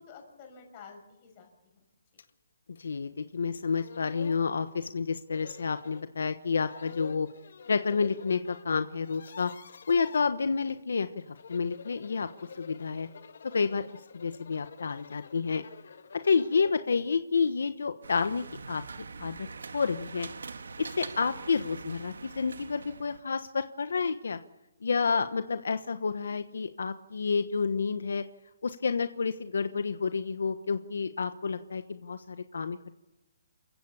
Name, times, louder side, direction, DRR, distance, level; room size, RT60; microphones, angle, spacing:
voice 1, 0.0-1.8 21.1-21.3, left 5 dB, 25° left, 3 dB, 6.2 m, -51 dB
sound 1, 2.2-2.3 2.8-2.9 3.5-3.6 3.8-4.5 5.3-6.1 6.6-8.6 8.9-10.2 11.2-16.9, left 6 dB, 60° left, 1.8 m, -48 dB
voice 2, 2.8-7.3 7.7-9.5 9.9-12.3 12.6-13.1 13.4-13.8 14.1-15.6 16.1-18.8 19.2-19.5 19.7-20.3 20.8-24.4 24.8-28.2 28.6-32.8, left 5 dB, 75° left, 10 dB, 1.2 m, -29 dB
sound 2, 18.0-23.2, right 4 dB, 90° right, 1.7 m, -43 dB
28.5 x 15.5 x 7.2 m, 1.0 s
hypercardioid pair, 170°, 0 cm